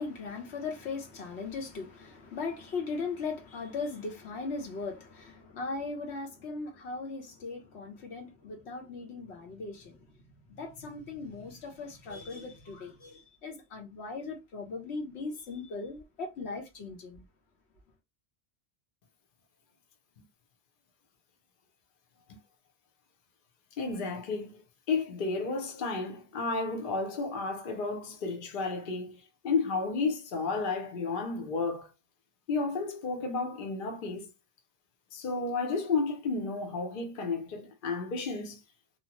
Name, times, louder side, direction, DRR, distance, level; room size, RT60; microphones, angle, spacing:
voice 1, 0.0-17.2, left 4 dB, 90° left, 1.1 m, -38 dB
voice 2, 23.8-24.6 24.9-29.2 29.4-31.9 32.5-34.3 35.1-38.6, left 4 dB, 60° left, 0.9 m, -32 dB
2.8 x 2.1 x 2.9 m
omnidirectional pair, 1.1 m